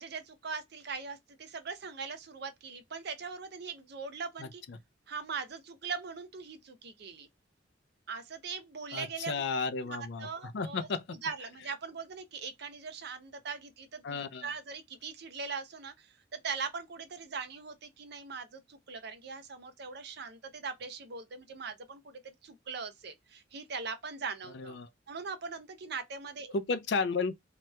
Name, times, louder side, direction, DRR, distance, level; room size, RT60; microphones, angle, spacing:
voice 1, 0.0-4.6 5.1-7.3 8.1-9.4 9.8-24.8 25.1-26.6, right 5 dB, 55° right, 0.6 m, -41 dB
voice 2, 4.4-4.8 8.9-11.2 14.0-14.5 24.5-24.9 26.5-27.3, left 4 dB, 60° left, 0.4 m, -33 dB
2.8 x 2.2 x 3.1 m
head